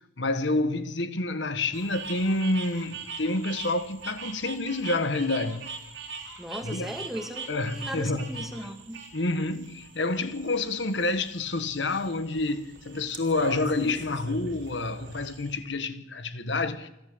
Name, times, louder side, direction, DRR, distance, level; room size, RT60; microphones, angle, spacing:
voice 1, 0.2-5.7 6.6-6.9 7.5-8.5 9.1-16.9, left 2 dB, 70° left, 1.4 m, -28 dB
sound 1, 1.7-15.6, right 4 dB, 85° right, 3.6 m, -42 dB
voice 2, 6.4-9.0, equal, ahead, 2.2 m, -37 dB
27.5 x 12.5 x 7.9 m
head